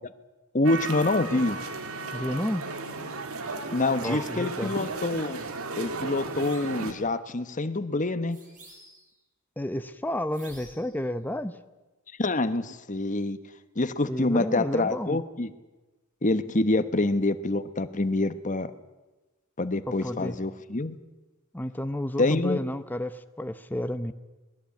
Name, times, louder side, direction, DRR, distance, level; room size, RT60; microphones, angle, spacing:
voice 1, 0.5-1.6 3.7-5.4 5.8-8.4 12.2-13.4 13.8-15.5 16.2-18.7 19.6-21.0 22.2-22.6, left 2 dB, 35° left, 11 dB, 1.1 m, -26 dB
sound 1, 0.6-6.9, right 3 dB, 85° right, 2.1 m, -35 dB
voice 2, 2.1-2.7 4.0-4.7 9.6-11.6 14.0-15.2 19.9-20.3 21.5-24.1, left 1 dB, 10° left, 10 dB, 0.8 m, -31 dB
sound 2, 6.3-6.8 8.3-9.1 10.3-10.9, right 2 dB, 35° right, 7.2 m, -51 dB
22.5 x 20.0 x 8.5 m, 1.1 s
head